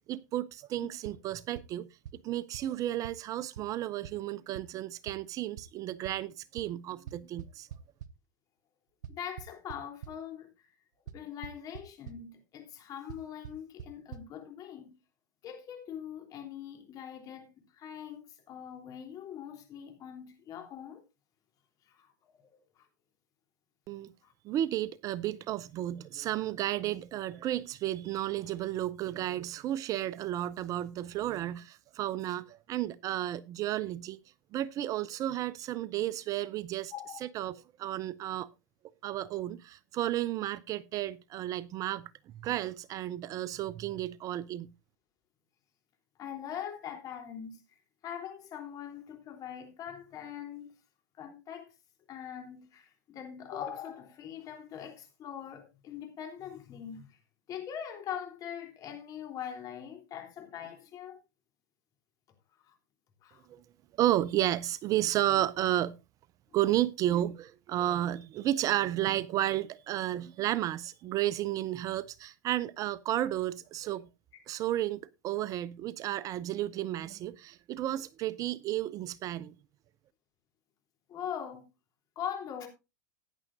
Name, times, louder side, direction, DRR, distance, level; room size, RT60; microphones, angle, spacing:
voice 1, 0.1-1.9 2.2-7.7 23.9-24.1 24.4-34.2 34.5-36.9 37.3-38.5 39.0-42.1 42.4-44.7 63.5-63.6 64.0-66.0 66.5-74.1 74.5-79.5, right 13 dB, 35° right, 0.5 m, -32 dB
sound 1, 1.0-1.2 1.6-1.7 2.1-2.2 2.5-2.6 3.0-3.1 3.6-3.7 4.0-4.1 4.5-4.6 5.1-5.2 5.6-5.7 6.0-6.1 6.6-6.7 7.1-8.1 9.0-10.1 11.1-11.2 11.4-11.8 12.1-12.2 13.1-13.2 13.4-13.5 13.8-13.9 14.1-14.2, right 9 dB, 75° right, 0.8 m, -42 dB
voice 2, 9.1-10.5 11.1-14.9 15.4-17.5 17.7-21.0 21.9-22.9 24.2-24.3 36.9-37.2 46.2-47.6 48.0-50.7 51.1-51.7 52.1-57.2 57.5-61.2 62.6-62.8 63.2-63.5 66.7-66.8 81.1-81.6 82.2-82.7, left 9 dB, 35° left, 3.5 m, -42 dB
15.0 x 10.0 x 2.6 m
hypercardioid pair, 105°, 10 cm